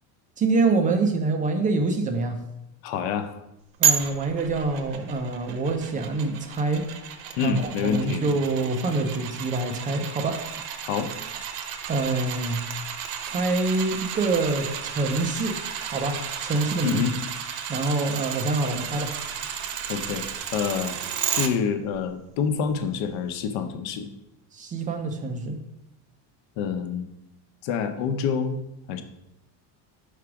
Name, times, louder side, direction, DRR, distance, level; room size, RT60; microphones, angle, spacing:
voice 1, 0.4-2.4 3.8-6.9 7.4-10.5 11.9-12.6 13.3-15.6 15.9-17.0 17.7-19.1 24.5-25.6, right 3 dB, 20° right, 5 dB, 0.3 m, -26 dB
voice 2, 2.8-3.3 7.4-8.2 10.8-11.1 16.8-17.1 19.9-20.3 20.5-21.0 21.3-24.1 26.6-27.1 27.6-28.6 28.9-29.0, left 6 dB, 70° left, 8 dB, 0.9 m, -27 dB
sound 1, 3.8-21.5 21.9-22.0, right 8 dB, 75° right, 0.9 m, -32 dB
4.9 x 4.7 x 5.8 m, 0.87 s
cardioid pair, 175°, 46 cm